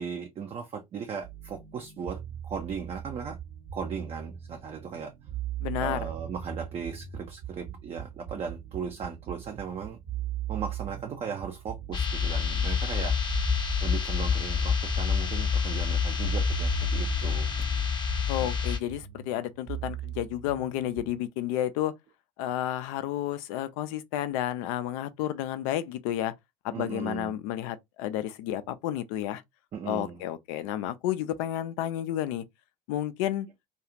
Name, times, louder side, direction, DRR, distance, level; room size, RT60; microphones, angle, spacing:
voice 1, 0.0-3.4 3.7-5.1 5.8-10.0 10.5-13.1 13.8-17.5 18.4-18.5 26.7-27.3 29.7-30.2, right 6 dB, 30° right, 0.5 m, -37 dB
sound 1, 1.2-21.2, right 11 dB, 60° right, 0.9 m, -39 dB
voice 2, 5.6-6.1 18.3-21.9 22.4-26.3 26.6-29.4 29.9-32.4 32.9-33.5, left 12 dB, 60° left, 0.5 m, -31 dB
sound 2, 11.9-18.8, left 6 dB, 25° left, 0.8 m, -27 dB
2.4 x 2.4 x 2.9 m
figure-of-eight pair, 60°, 19 cm